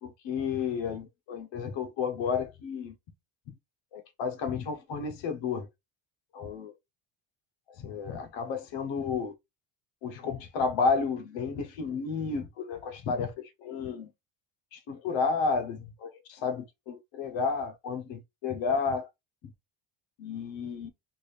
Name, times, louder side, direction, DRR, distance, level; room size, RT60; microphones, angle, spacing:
voice 1, 0.0-2.9 3.5-3.6 3.9-5.7 6.3-6.7 7.7-9.3 10.0-14.1 14.7-19.1 19.4-19.5 20.2-20.9, left 5 dB, 65° left, 1.0 m, -32 dB
3.7 x 2.4 x 3.2 m
cardioid pair, 160°, 50 cm